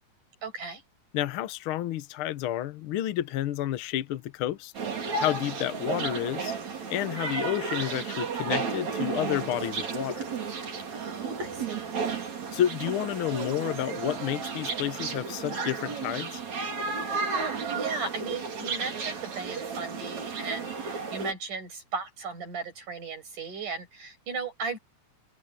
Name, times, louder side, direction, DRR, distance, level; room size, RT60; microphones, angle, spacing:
voice 1, 0.4-0.8 10.9-11.9 17.0-24.8, right 4 dB, 75° right, 8.3 m, -36 dB
voice 2, 1.1-4.7 5.2-6.6 6.9-10.2 12.5-16.4, left 12 dB, 80° left, 1.2 m, -30 dB
sound 1, 4.7-21.3, right 5 dB, 60° right, 4.8 m, -33 dB
omnidirectional pair, 3.6 m